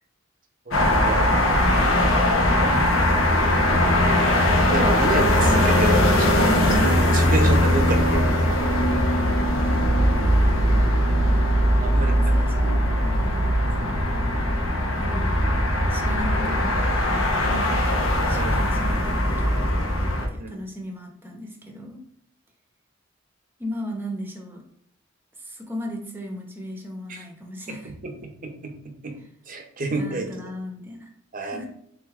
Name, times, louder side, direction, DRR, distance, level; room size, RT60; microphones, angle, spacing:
sound 1, 0.7-20.3, left 1 dB, 80° left, 0.7 m, -20 dB
voice 1, 0.7-1.3 2.6-3.0 4.6-8.6 11.8-12.1 18.3-18.6 20.4-20.5 27.1-27.3 27.7-29.2 29.5-30.3 31.3-31.6, right 2 dB, 40° right, 4 dB, 0.7 m, -30 dB
voice 2, 10.0-10.8 12.0-14.2 14.8-15.4 15.9-18.0 18.3-22.0 23.6-24.6 25.4-27.9 29.9-31.1 31.4-31.7, left 1 dB, 10° right, 0 dB, 0.8 m, -37 dB
3.7 x 3.3 x 3.6 m, 0.70 s
head